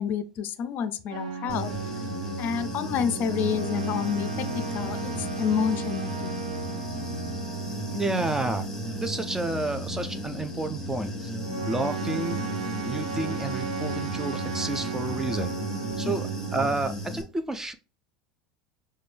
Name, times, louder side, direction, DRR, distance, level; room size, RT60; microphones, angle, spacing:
voice 1, 0.0-1.7 2.4-6.3 16.0-16.3, left 7 dB, 50° left, 12 dB, 0.4 m, -29 dB
sound 1, 1.1-16.7, right 4 dB, 90° right, 0.6 m, -35 dB
Human voice / Buzz, 1.5-17.2, equal, 15° left, 1.2 m, -35 dB
voice 2, 7.9-8.7 9.0-11.3 11.6-12.4 12.8-15.6 16.0-17.7, right 2 dB, 10° right, 9 dB, 0.4 m, -30 dB
5.0 x 2.2 x 3.3 m, 0.36 s
hypercardioid pair, 90°, 4 cm